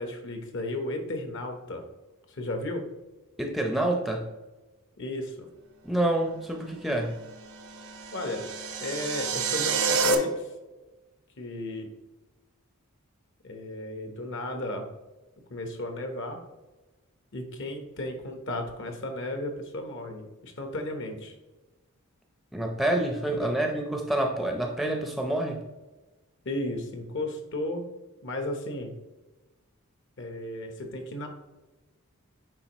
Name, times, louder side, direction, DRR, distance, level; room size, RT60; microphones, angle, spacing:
voice 1, 0.0-1.8 2.3-2.8 5.0-5.5 8.1-8.5 8.8-10.5 11.4-11.9 13.4-14.9 15.5-16.4 17.3-21.3 23.4-23.5 26.4-27.9 28.2-28.9 30.2-31.3, left 1 dB, 55° left, 5 dB, 1.1 m, -34 dB
voice 2, 3.4-4.3 5.8-7.2 22.5-25.6, right 1 dB, ahead, 2 dB, 0.6 m, -27 dB
sound 1, 7.6-10.1, right 4 dB, 70° right, 0.9 m, -28 dB
9.7 x 3.9 x 3.0 m, 1.1 s
head